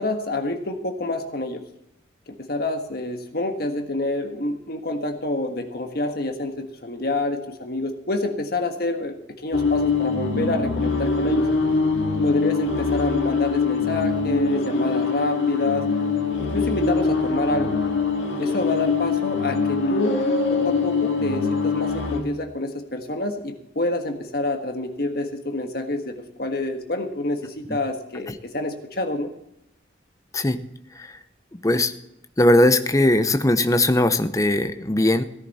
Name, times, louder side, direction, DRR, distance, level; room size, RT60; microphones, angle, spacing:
voice 1, 0.0-1.6 2.3-9.2 9.4-11.4 12.2-15.9 16.4-17.7 18.4-20.2 20.5-29.3, left 2 dB, 55° left, 5 dB, 1.5 m, -27 dB
sound 1, 9.5-22.2, left 4 dB, 75° left, 2.0 m, -23 dB
voice 2, 31.5-31.9 32.4-35.2, left 1 dB, 15° left, 10 dB, 0.6 m, -19 dB
17.0 x 11.0 x 4.2 m, 0.82 s
head